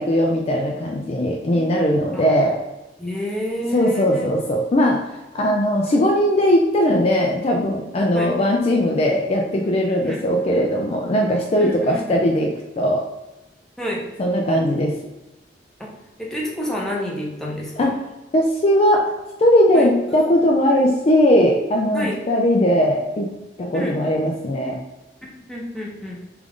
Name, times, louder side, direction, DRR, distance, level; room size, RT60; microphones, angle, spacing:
voice 1, 0.0-2.5 3.7-5.0 5.3-13.0 14.2-14.9 17.8-18.0 18.3-19.0 19.4-23.3 23.6-24.8, equal, 35° left, 0 dB, 0.4 m, -19 dB
voice 2, 3.0-4.3 8.1-8.3 10.0-10.2 11.6-12.2 13.8-14.0 15.8-15.9 16.2-17.9 19.7-19.9 21.9-22.2 23.7-23.9 25.5-26.2, equal, 5° left, -3 dB, 0.7 m, -28 dB
3.4 x 2.5 x 3.5 m, 1.0 s
head